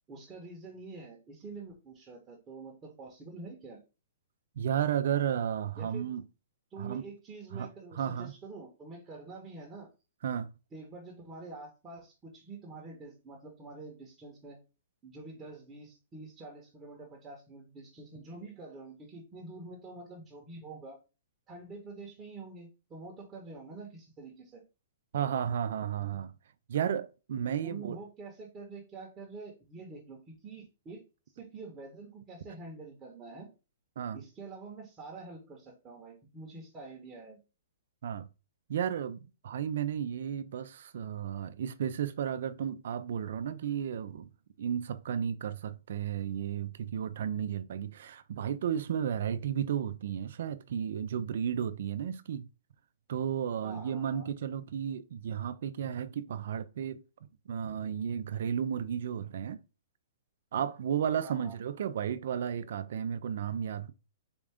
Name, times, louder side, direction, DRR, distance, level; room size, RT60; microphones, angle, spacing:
voice 1, 0.1-3.8 5.8-6.1 6.7-9.9 10.7-14.6 15.0-21.0 21.5-24.6 27.6-31.0 31.3-33.5 34.1-37.4 53.6-54.3 61.2-61.6, right 3 dB, 15° right, 0.9 m, -46 dB
voice 2, 4.6-6.2 6.8-7.1 7.5-7.7 7.9-8.3 10.2-10.5 25.1-26.3 26.7-28.0 34.0-34.2 38.0-38.3 38.7-44.3 44.6-52.5 53.1-57.0 57.5-59.6 60.5-63.9, right 8 dB, 65° right, 0.4 m, -33 dB
4.3 x 2.5 x 3.5 m
hypercardioid pair, 150°, 0 cm